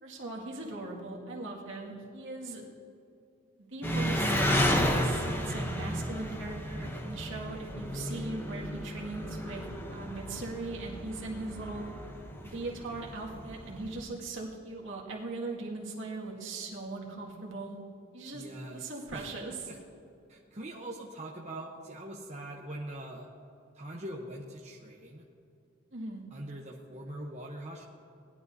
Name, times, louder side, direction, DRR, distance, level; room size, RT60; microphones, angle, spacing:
voice 1, 0.0-2.6 3.6-4.3 4.7-11.9 12.4-17.8 18.1-19.7 25.9-26.2, right 2 dB, 65° right, -3 dB, 2.0 m, -39 dB
Engine, 3.8-14.0, equal, 10° left, 0.8 m, -32 dB
voice 2, 18.3-18.8 19.1-19.3 19.7-19.8 20.3-23.3 23.7-25.2 26.3-27.8, right 1 dB, 35° right, -1 dB, 0.8 m, -42 dB
19.0 x 11.5 x 2.7 m, 2.7 s
head